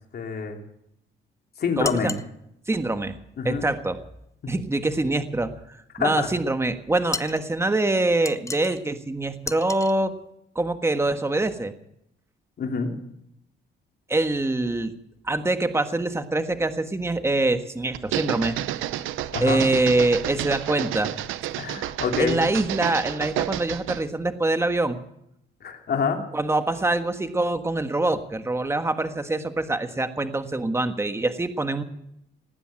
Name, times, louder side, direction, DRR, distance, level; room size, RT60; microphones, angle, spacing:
voice 1, 0.1-0.6 1.6-2.1 3.4-3.6 4.4-4.5 6.0-6.3 12.6-12.9 19.3-19.6 21.6-22.4 25.6-26.2, left 5 dB, 55° left, 3 dB, 3.2 m, -26 dB
sound 1, 1.8-2.3 7.1-7.5 8.3-8.8 9.4-9.9, left 3 dB, 15° left, 0.7 m, -33 dB
voice 2, 1.8-2.1 2.7-3.1 3.4-4.0 4.5-10.1 10.5-11.7 14.1-14.9 15.2-18.6 19.4-21.1 22.2-25.0 26.3-31.8, right 2 dB, 15° right, 8 dB, 1.5 m, -24 dB
sound 2, 17.9-24.1, right 13 dB, 90° right, 0.7 m, -30 dB
19.0 x 9.7 x 7.7 m, 0.77 s
cardioid pair, 90°, 20 cm